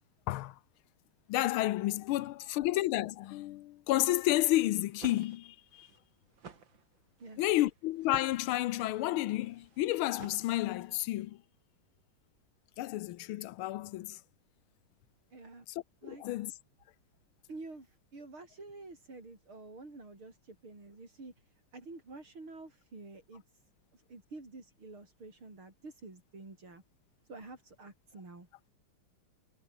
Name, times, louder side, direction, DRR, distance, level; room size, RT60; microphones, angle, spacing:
voice 1, 0.3-0.6 1.3-5.9 7.4-11.4 12.8-14.2 16.0-16.5, left 16 dB, 85° left, 1.5 m, -31 dB
sound 1, 4.7-11.0, right 6 dB, 65° right, 3.0 m, -52 dB
voice 2, 7.2-7.5 15.3-15.7 16.0-16.2 17.5-23.4 23.9-26.8 27.3-28.5, right 3 dB, 80° right, 7.4 m, -49 dB
omnidirectional pair, 2.3 m